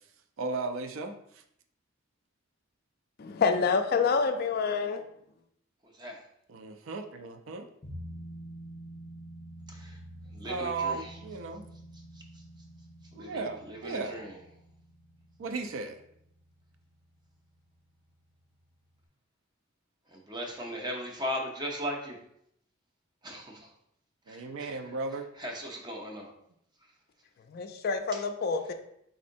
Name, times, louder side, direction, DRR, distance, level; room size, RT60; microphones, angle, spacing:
voice 1, 0.4-1.4 6.5-7.7 10.4-11.6 13.1-14.2 15.4-16.0 24.3-25.3, right 3 dB, 75° right, 8 dB, 0.4 m, -35 dB
voice 2, 3.2-5.0 27.5-28.7, left 5 dB, 50° left, 8 dB, 0.3 m, -27 dB
voice 3, 5.8-6.2 9.7-10.0 10.3-11.1 13.1-14.4 20.1-22.2 23.2-23.7 24.3-24.8 25.4-26.3, equal, 20° right, 0 dB, 0.7 m, -38 dB
sound 1, 7.8-16.9 17.2-17.3, right 1 dB, 20° left, 0.9 m, -47 dB
4.2 x 3.7 x 2.6 m, 0.72 s
head